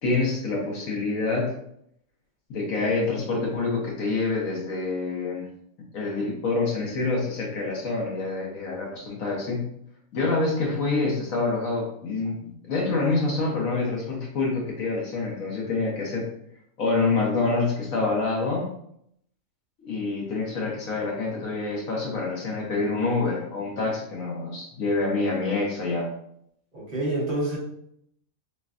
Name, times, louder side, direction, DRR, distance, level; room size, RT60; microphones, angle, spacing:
voice 1, 0.0-1.5 2.5-5.5 5.9-9.6 10.1-16.3 16.8-18.7 19.8-26.1, left 3 dB, 70° left, -2 dB, 1.5 m, -26 dB
voice 2, 26.7-27.6, right 1 dB, 40° right, -4 dB, 1.1 m, -27 dB
6.4 x 2.3 x 2.5 m, 0.71 s
omnidirectional pair, 1.5 m